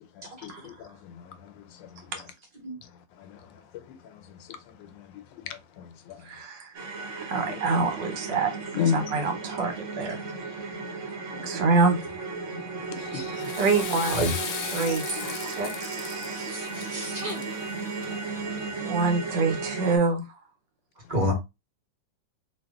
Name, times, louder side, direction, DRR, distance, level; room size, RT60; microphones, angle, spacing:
voice 1, 0.2-1.1 1.4-1.6 1.9-2.1 3.2-3.4 4.3-4.4 4.9-5.1 5.5-6.2 8.7-9.0 13.0-13.5 14.8-15.0 18.5-18.6, left 8 dB, 90° left, 1.3 m, -33 dB
voice 2, 6.2-6.7 7.1-8.5 8.8-10.2 10.5-10.6 11.4-12.0 13.6-14.2 14.7-16.5 18.8-20.2, right 4 dB, 80° right, 1.5 m, -26 dB
sound 1, 6.7-20.0, right 4 dB, 55° right, 0.9 m, -35 dB
Water / Toilet flush, 13.2-18.4, left 8 dB, 75° left, 1.1 m, -38 dB
voice 3, 16.5-17.4 21.1-21.3, equal, 30° right, 0.9 m, -28 dB
2.7 x 2.6 x 3.5 m
omnidirectional pair, 2.0 m